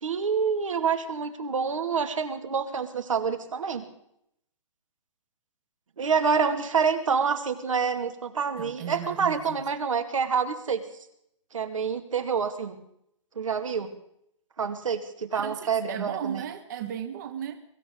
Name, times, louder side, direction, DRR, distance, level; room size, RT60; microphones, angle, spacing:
voice 1, 0.0-3.8 6.0-10.8 11.5-12.8 13.4-13.9 14.6-16.4, right 6 dB, 85° right, 7 dB, 2.2 m, -27 dB
voice 2, 8.6-9.7 15.3-17.6, right 9 dB, 35° right, 8 dB, 1.0 m, -36 dB
23.5 x 13.5 x 3.9 m, 0.74 s
hypercardioid pair, 160°, 16 cm